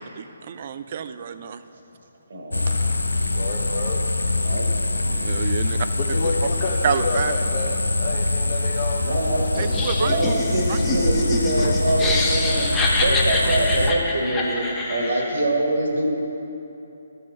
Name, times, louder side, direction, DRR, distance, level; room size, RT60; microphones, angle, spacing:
voice 1, 0.2-1.6 5.0-5.8 6.8-7.3 9.6-10.2 10.7-10.8 11.6-11.7, right 8 dB, 45° right, 12 dB, 0.3 m, -28 dB
voice 2, 2.3-2.7 4.4-4.7 9.0-9.6 10.0-16.0, right 2 dB, 65° right, 2 dB, 1.3 m, -24 dB
sound 1, 2.5-13.9, left 2 dB, 85° left, 0.5 m, -24 dB
voice 3, 3.3-4.0 4.5-4.6 5.1-5.3 5.9-9.2, left 4 dB, 40° left, -1 dB, 0.7 m, -30 dB
Laughter, 9.6-15.4, left 2 dB, 15° left, 0.9 m, -26 dB
13.0 x 5.4 x 3.8 m, 3.0 s
figure-of-eight pair, 145°, 0 cm